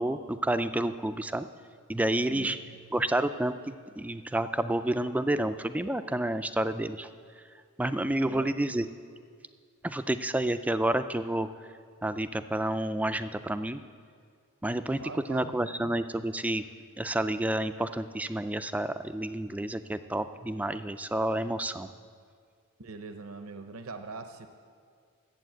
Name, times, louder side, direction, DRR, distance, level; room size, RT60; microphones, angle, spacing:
voice 1, 0.0-1.5 1.9-2.6 2.9-7.1 7.8-8.9 9.8-11.5 12.0-13.8 14.6-15.0 15.3-16.6 17.0-21.9, right 1 dB, 5° right, 10 dB, 0.3 m, -29 dB
voice 2, 2.3-2.9 8.2-8.6 15.0-15.5 22.8-24.5, right 4 dB, 75° right, 7 dB, 0.7 m, -42 dB
11.5 x 8.0 x 7.7 m, 2.1 s
head